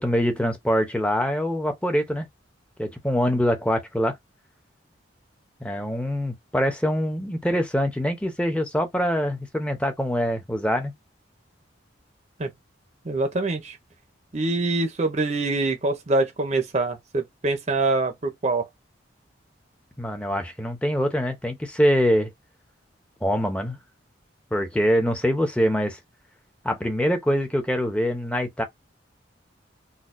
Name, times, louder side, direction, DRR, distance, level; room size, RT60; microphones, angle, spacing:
voice 1, 0.0-2.3 2.8-4.2 5.6-10.9 20.0-22.3 23.2-23.8 24.5-26.0 26.6-28.6, equal, 5° left, 0.7 m, -24 dB
voice 2, 13.1-13.8 14.3-18.7, right 2 dB, 35° right, 0.6 m, -24 dB
4.1 x 2.2 x 2.5 m
head